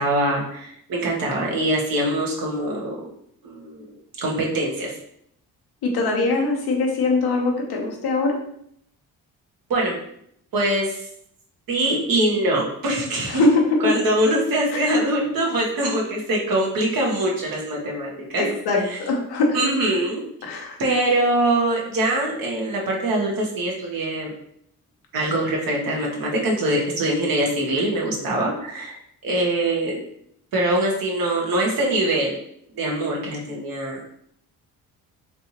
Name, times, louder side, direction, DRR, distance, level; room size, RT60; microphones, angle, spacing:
voice 1, 0.0-3.0 3.4-3.9 4.2-4.9 9.7-10.0 10.5-11.1 11.7-13.4 13.8-18.4 18.9-19.0 19.5-20.2 20.8-24.3 25.1-29.0 29.2-29.9 30.5-32.3 32.7-34.0, right 1 dB, 60° right, -2 dB, 1.2 m, -23 dB
voice 2, 5.8-8.4 13.3-13.9 14.7-15.0 18.4-19.6 20.4-21.0, left 3 dB, 70° left, 1 dB, 0.9 m, -22 dB
3.4 x 2.7 x 2.9 m, 0.70 s
supercardioid pair, 60°, 39 cm